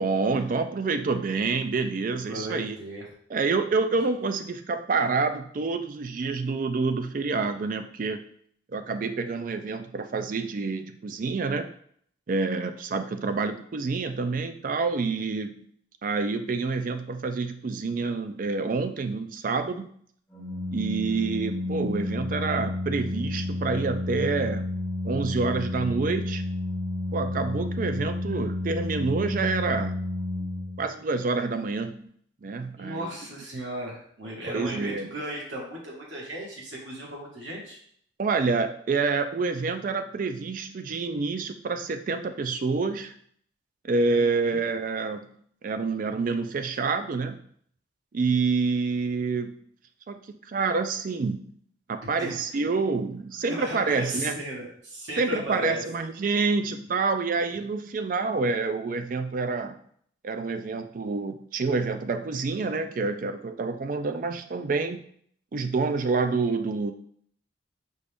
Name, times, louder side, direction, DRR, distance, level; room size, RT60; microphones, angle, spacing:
voice 1, 0.0-2.8 3.3-8.3 8.7-11.7 12.3-15.6 16.0-19.9 20.7-24.7 25.0-26.4 27.1-30.0 30.8-32.1 32.4-33.1 34.5-35.1 38.2-43.1 43.8-45.3 45.6-47.4 48.1-49.6 50.1-51.4 51.9-54.4 55.2-59.8 60.2-65.0 65.5-66.9, right 4 dB, 45° right, 8 dB, 0.4 m, -27 dB
voice 2, 2.3-3.0 32.8-37.8 44.1-44.6 52.0-52.6 53.5-55.8, equal, 80° right, -3 dB, 1.5 m, -36 dB
Organ, 20.3-31.1, left 2 dB, 10° left, 0.9 m, -31 dB
5.2 x 2.5 x 3.4 m, 0.62 s
head